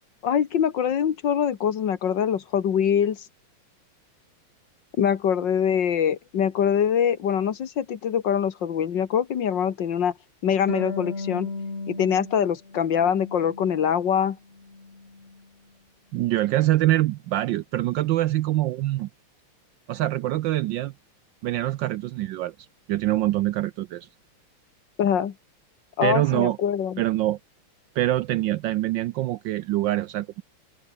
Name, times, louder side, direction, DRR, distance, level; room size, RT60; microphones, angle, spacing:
voice 1, 0.2-3.3 5.0-10.1 10.4-11.5 11.9-14.4 25.0-25.3 26.0-27.0, left 8 dB, 60° left, 1.9 m, -23 dB
Harp, 10.7-14.1 14.4-15.5, left 3 dB, 30° left, 2.8 m, -36 dB
voice 2, 16.1-19.1 19.9-20.9 21.4-22.5 22.9-24.1 26.0-26.6 27.0-27.4 28.0-30.3, right 15 dB, 75° right, 1.1 m, -24 dB
omnidirectional pair, 2.4 m